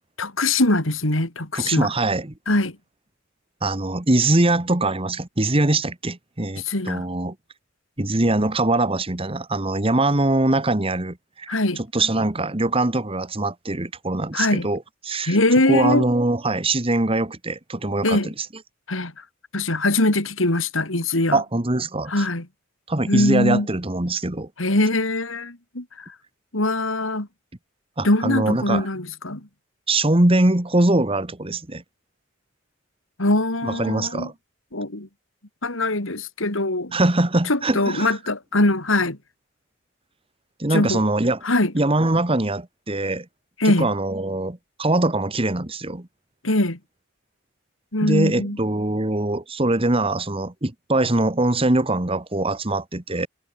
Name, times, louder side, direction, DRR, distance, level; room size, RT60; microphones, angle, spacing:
voice 1, 0.2-1.9 2.5-2.8 6.6-7.0 11.5-11.8 14.3-14.7 15.3-16.1 18.0-18.3 18.9-19.2 19.5-21.4 22.1-22.5 23.1-23.7 24.6-26.1 26.5-27.3 28.0-29.5 33.2-34.3 34.7-35.1 35.6-36.9 37.5-39.2 40.7-41.1 41.4-41.7 43.6-43.9 46.4-46.8 47.9-48.6, left 2 dB, 85° left, 3.6 m, -22 dB
voice 2, 1.5-2.3 3.6-7.3 8.0-11.5 11.8-15.4 15.7-18.3 21.3-22.2 22.9-24.5 28.0-28.9 29.9-31.8 33.6-34.3 36.9-38.1 40.6-41.4 41.7-43.2 43.6-46.1 48.0-53.3, right 2 dB, 30° right, 1.6 m, -22 dB
head